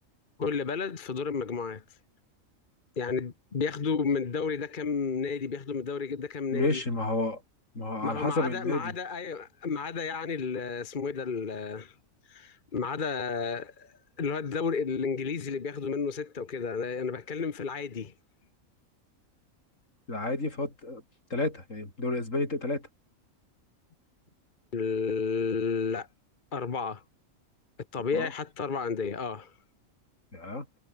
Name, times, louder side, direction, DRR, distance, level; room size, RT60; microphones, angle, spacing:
voice 1, 0.4-1.8 3.0-6.8 8.0-12.0 12.3-18.1 24.7-26.1 26.5-27.0 27.9-29.5, left 5 dB, 40° left, 1.2 m, -32 dB
voice 2, 6.5-7.4 7.8-8.9 20.1-21.0 21.3-22.9 28.1-28.3 30.3-30.7, left 2 dB, 65° left, 5.5 m, -30 dB
omnidirectional pair, 1.4 m